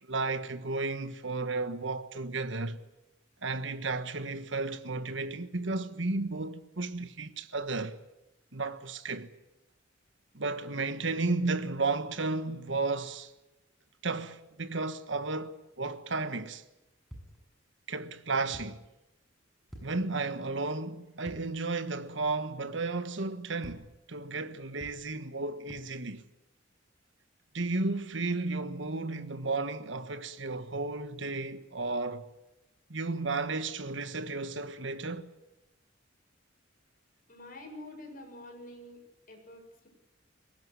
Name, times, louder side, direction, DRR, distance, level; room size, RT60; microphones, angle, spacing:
voice 1, 0.0-2.8 3.4-8.0 8.5-9.3 10.3-13.3 14.0-16.6 17.9-18.8 19.8-26.2 27.5-32.3 32.9-35.3, right 3 dB, 65° right, 1.5 m, -33 dB
sound 1, 17.1-17.6 18.5-19.0 19.7-20.4 21.2-21.8 22.0-22.1 23.6-24.1 24.8-25.3 25.7-26.2, equal, ahead, 7.1 m, -50 dB
voice 2, 37.3-39.0 39.3-39.9, left 1 dB, 45° left, 7.3 m, -47 dB
23.5 x 19.0 x 9.7 m
head